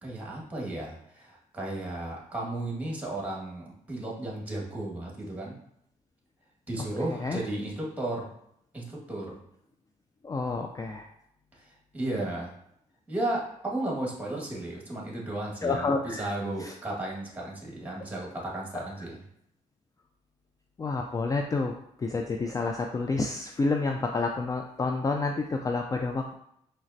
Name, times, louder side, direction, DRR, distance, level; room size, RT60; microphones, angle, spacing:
voice 1, 0.0-5.6 6.7-8.3 8.7-9.4 11.6-11.7 11.9-12.5 13.1-19.2, right 1 dB, 10° right, -2 dB, 1.5 m, -34 dB
voice 2, 10.2-11.1 15.6-16.3 16.6-16.7 18.7-18.8 20.8-21.7 22.0-26.3, left 3 dB, 25° left, 3 dB, 0.3 m, -29 dB
4.1 x 3.2 x 2.6 m, 0.73 s
cardioid pair, 70°, 14 cm